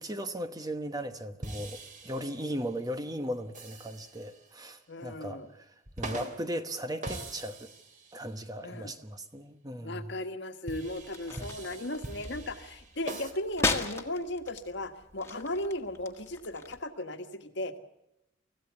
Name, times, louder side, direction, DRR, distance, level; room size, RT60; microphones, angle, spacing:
voice 1, 0.0-7.7 8.1-10.2 11.3-11.5, equal, 20° right, 1.1 m, -37 dB
sound 1, 1.4-2.8 3.5-4.7 5.9-6.5 7.0-8.4 10.7-13.3, right 2 dB, 40° right, 2.8 m, -43 dB
voice 2, 4.9-5.5 8.6-8.9 9.8-17.8, left 1 dB, 60° left, 1.6 m, -36 dB
sound 2, 10.9-16.8, left 3 dB, 15° left, 1.7 m, -37 dB
25.0 x 15.0 x 8.2 m
head